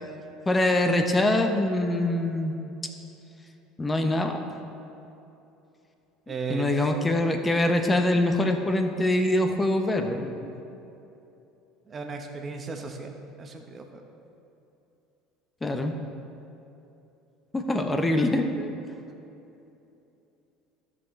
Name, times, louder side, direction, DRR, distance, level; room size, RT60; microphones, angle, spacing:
voice 1, 0.5-2.5 3.8-4.4 6.3-10.5 15.6-15.9 17.5-18.7, left 1 dB, 20° left, 5 dB, 0.9 m, -24 dB
voice 2, 6.3-6.7 11.9-13.1 13.4-14.0, right 5 dB, 35° right, 3 dB, 1.1 m, -35 dB
13.5 x 6.0 x 3.3 m, 2.9 s
hypercardioid pair, 75°, 0 cm